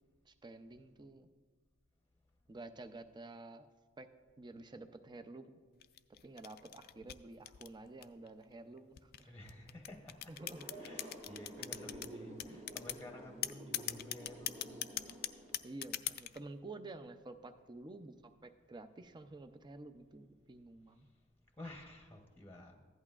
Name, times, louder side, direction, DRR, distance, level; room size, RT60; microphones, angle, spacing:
voice 1, 0.3-1.3 2.5-3.7 4.0-4.1 4.4-5.6 6.2-9.3 10.3-10.7 15.6-21.1, right 2 dB, 20° right, 9 dB, 0.5 m, -50 dB
sound 1, 5.8-8.3 9.0-12.1 12.4-13.0 13.4-16.4, left 13 dB, 50° left, 0.4 m, -40 dB
voice 2, 9.2-10.3 10.8-14.6 21.6-22.8, left 1 dB, 10° left, 2 dB, 0.8 m, -52 dB
sound 2, 10.4-15.6, right 1 dB, 40° right, 1.5 m, -51 dB
15.0 x 11.0 x 2.4 m, 1.5 s
head